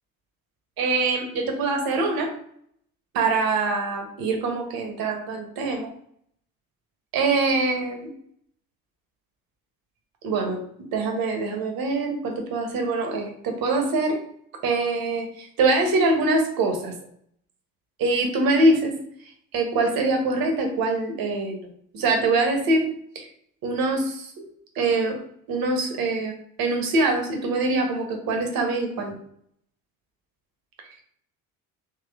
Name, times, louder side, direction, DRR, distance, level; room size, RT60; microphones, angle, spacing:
voice 1, 0.8-2.3 3.1-5.9 7.1-8.1 10.2-10.6 10.9-14.2 14.6-16.9 18.0-18.9 19.5-22.9 23.1-23.3 23.6-24.5 24.7-25.2 25.5-29.1, right 2 dB, 55° right, 3 dB, 1.3 m, -24 dB
3.7 x 3.1 x 3.5 m, 0.66 s
hypercardioid pair, 60°, 43 cm